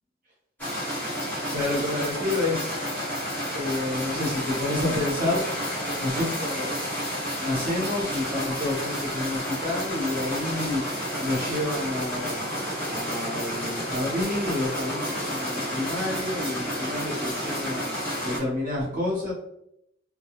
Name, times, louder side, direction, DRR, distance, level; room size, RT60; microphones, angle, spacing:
sound 1, 0.6-18.4, equal, 10° left, 1.1 m, -30 dB
voice 1, 1.5-2.7 3.5-5.4 5.9-6.9 7.4-10.8 11.2-12.4 12.9-17.9 18.2-19.3, left 2 dB, 45° right, -5 dB, 0.9 m, -29 dB
2.3 x 2.0 x 2.8 m, 0.76 s
head